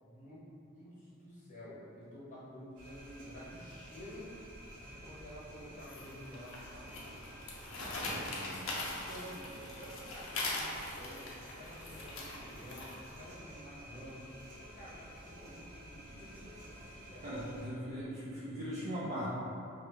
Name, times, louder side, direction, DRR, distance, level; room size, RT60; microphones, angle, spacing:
voice 1, 0.0-4.3 4.7-7.2 8.6-17.4, equal, 35° left, -10 dB, 0.8 m, -51 dB
sound 1, 2.8-17.7, equal, 85° right, 1.0 m, -52 dB
sound 2, 5.8-13.2, left 2 dB, 65° left, 0.5 m, -41 dB
voice 2, 7.8-8.7 17.2-19.2, equal, 35° right, -9 dB, 0.4 m, -40 dB
2.7 x 2.4 x 3.0 m, 2.7 s
head